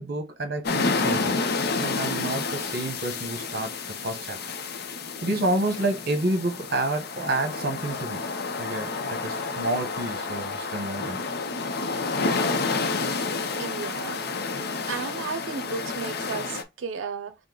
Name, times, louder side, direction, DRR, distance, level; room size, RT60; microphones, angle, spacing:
voice 1, 0.0-1.3 1.8-4.4 5.2-8.2 8.6-11.2, right 2 dB, 55° right, 1.0 m, -29 dB
sound 1, 0.6-16.6, left 4 dB, 55° left, 0.6 m, -30 dB
voice 2, 13.6-14.2 14.9-17.3, right 5 dB, 85° right, 0.6 m, -33 dB
5.3 x 2.1 x 3.8 m
head